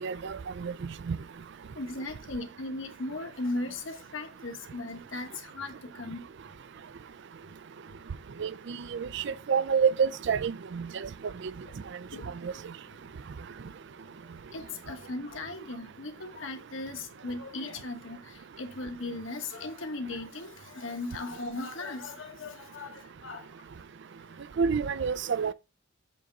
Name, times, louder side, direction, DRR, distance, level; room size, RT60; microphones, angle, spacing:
voice 1, 0.0-0.7 1.1-1.2 8.4-11.1 12.4-12.5 24.6-25.5, right 6 dB, 55° right, 0.4 m, -28 dB
voice 2, 1.7-6.2 11.6-11.7 12.1-12.4 14.0-23.6 24.2-24.3, left 2 dB, 65° left, 1.3 m, -38 dB
7.5 x 3.6 x 5.2 m
head